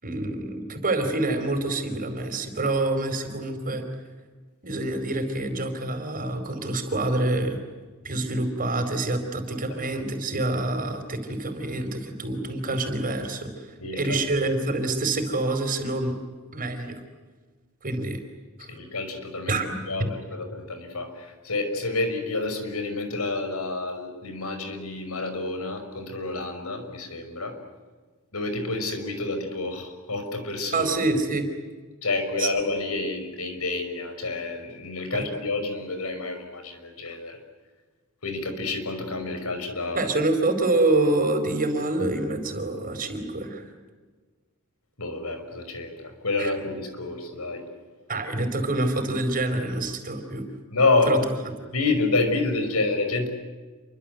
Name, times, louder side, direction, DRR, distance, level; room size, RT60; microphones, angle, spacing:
voice 1, 0.0-3.8 4.6-7.6 8.0-16.2 16.5-17.0 17.8-18.2 18.6-18.7 19.5-19.7 20.0-20.1 30.7-31.5 32.4-32.5 35.1-35.3 39.9-43.6 46.4-46.5 48.1-50.4 51.0-51.2, right 2 dB, 40° right, 7 dB, 4.7 m, -26 dB
voice 2, 13.8-14.2 18.7-20.1 20.3-27.6 28.3-30.9 32.0-37.4 38.2-40.1 45.0-47.6 50.7-51.3 51.7-53.3, left 3 dB, 80° left, 7 dB, 5.7 m, -28 dB
29.0 x 24.5 x 7.9 m, 1.4 s
head